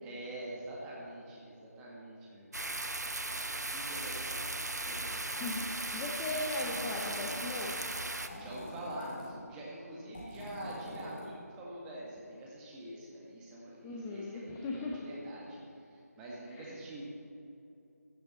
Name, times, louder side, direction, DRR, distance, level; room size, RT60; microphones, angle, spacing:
voice 1, 0.0-2.5 3.6-5.5 8.4-17.0, right 1 dB, 10° right, -5 dB, 1.7 m, -45 dB
sound 1, 2.5-8.3, right 2 dB, 85° right, 1.0 m, -37 dB
voice 2, 5.9-7.9 13.8-15.0 16.5-16.8, left 2 dB, 10° left, -1 dB, 0.5 m, -38 dB
sound 2, 6.6-7.5 8.2-9.3 10.1-11.3, left 1 dB, 30° left, 2.9 m, -45 dB
16.0 x 12.0 x 4.2 m, 2.8 s
figure-of-eight pair, 165°, 9 cm